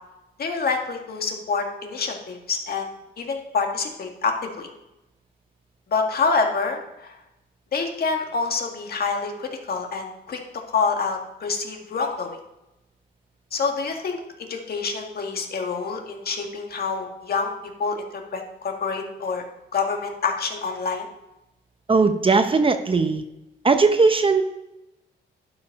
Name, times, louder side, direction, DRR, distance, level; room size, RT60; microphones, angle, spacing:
voice 1, 0.4-2.9 3.2-4.7 5.9-7.2 7.7-10.4 10.7-12.4 13.5-17.5 17.8-18.1 18.3-19.4 19.7-21.1, left 4 dB, 50° left, 3 dB, 1.8 m, -27 dB
voice 2, 21.9-23.2 23.6-24.4, right 4 dB, 25° right, 8 dB, 0.8 m, -18 dB
11.5 x 5.3 x 5.3 m, 0.93 s
cardioid pair, 90°, 20 cm